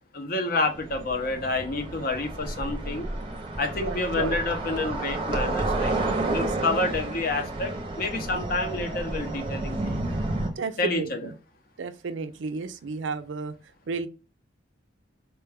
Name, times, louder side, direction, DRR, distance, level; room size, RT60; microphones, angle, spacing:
voice 1, 0.1-3.1 3.6-5.9 6.3-10.0 10.8-11.3, left 2 dB, 50° left, 0.6 m, -29 dB
sound 1, 0.7-10.5, right 2 dB, 25° right, 0.6 m, -31 dB
voice 2, 3.8-4.4 6.3-6.5 10.1-10.2 10.6-11.3 11.8-13.5 13.9-14.1, right 4 dB, 75° right, 0.4 m, -32 dB
4.4 x 2.2 x 3.3 m
head